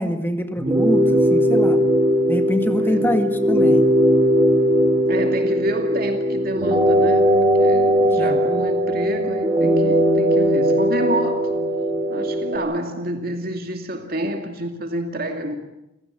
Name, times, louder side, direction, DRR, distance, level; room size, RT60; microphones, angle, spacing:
voice 1, 0.0-1.8 2.3-3.8 8.2-8.4, equal, 10° left, 1.9 m, -24 dB
sound 1, 0.6-12.6, equal, 20° right, 4.4 m, -19 dB
voice 2, 2.8-3.1 5.1-7.3 7.6-11.6 12.1-15.6, right 1 dB, 50° right, 2.5 m, -28 dB
28.5 x 17.0 x 9.0 m
head